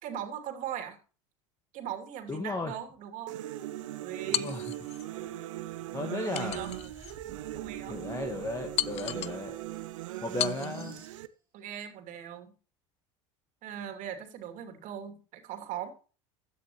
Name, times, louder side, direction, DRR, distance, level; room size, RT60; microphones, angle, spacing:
voice 1, 0.0-1.0 1.7-3.4 4.0-4.6 6.2-6.7 7.5-8.0 11.5-12.5 13.6-15.9, right 9 dB, 55° right, 5 dB, 2.9 m, -39 dB
voice 2, 2.3-2.7 4.3-4.8 5.9-6.6 7.9-9.6 10.2-11.0, left 2 dB, 20° left, 5 dB, 1.6 m, -35 dB
sound 1, 3.3-11.3, right 14 dB, 75° right, 0.8 m, -39 dB
sound 2, 4.3-5.1 6.3-7.2 7.7-7.8 8.8-9.4 10.4-10.9, left 14 dB, 40° left, 0.5 m, -34 dB
sound 3, 6.4-11.2, right 1 dB, 15° right, 4.1 m, -56 dB
15.0 x 10.5 x 3.1 m, 0.36 s
hypercardioid pair, 80°, 16 cm